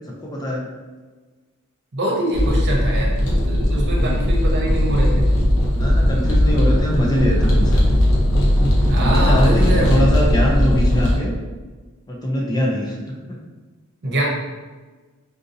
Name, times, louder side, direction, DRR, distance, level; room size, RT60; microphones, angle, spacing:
voice 1, 0.2-0.6 3.8-4.4 5.7-7.8 9.0-11.3 12.1-13.0, equal, 20° left, -2 dB, 0.4 m, -23 dB
voice 2, 1.9-5.3 8.9-9.9 14.0-14.2, right 1 dB, 55° right, -3 dB, 0.8 m, -24 dB
sound 1, 2.3-11.2, equal, 70° left, 0.9 m, -17 dB
3.7 x 2.7 x 2.6 m, 1.3 s
head